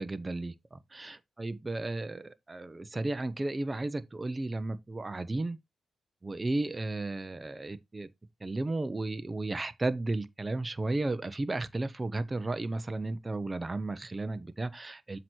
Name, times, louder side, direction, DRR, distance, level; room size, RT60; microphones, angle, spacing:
voice 1, 0.0-5.6 6.2-8.1 8.4-15.2, right 2 dB, 25° right, 0.8 m, -34 dB
7.6 x 3.0 x 6.1 m
cardioid pair, 65°, 0 cm